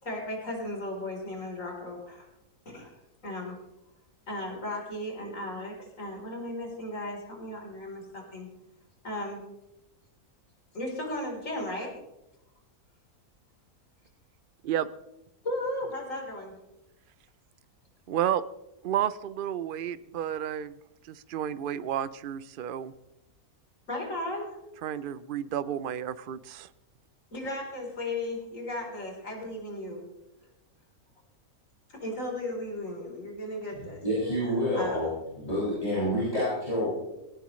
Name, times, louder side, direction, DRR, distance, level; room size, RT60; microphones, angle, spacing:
voice 1, 0.0-2.3 2.7-3.0 3.2-3.6 4.3-8.5 9.0-9.4 10.7-11.9 15.4-16.5 23.9-24.6 27.3-30.0 31.9-34.0 34.7-35.1, left 1 dB, 60° left, -1 dB, 4.3 m, -35 dB
voice 2, 18.1-18.4 18.8-20.7 21.1-22.9 24.8-26.7, right 10 dB, 60° right, 15 dB, 0.5 m, -31 dB
voice 3, 33.7-35.1 35.4-36.9, equal, 25° left, -10 dB, 7.0 m, -28 dB
18.0 x 17.5 x 3.2 m, 0.94 s
omnidirectional pair, 1.6 m